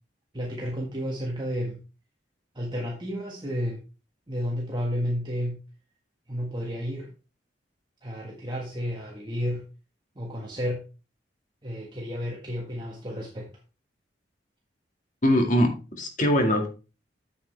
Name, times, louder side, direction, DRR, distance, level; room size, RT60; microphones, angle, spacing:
voice 1, 0.3-1.8 2.5-3.8 4.3-5.6 6.3-7.1 8.0-9.6 10.1-10.8 11.6-13.5, equal, 25° right, -2 dB, 1.6 m, -31 dB
voice 2, 15.2-16.7, equal, 45° left, 3 dB, 2.0 m, -22 dB
8.5 x 7.8 x 3.3 m, 0.33 s
head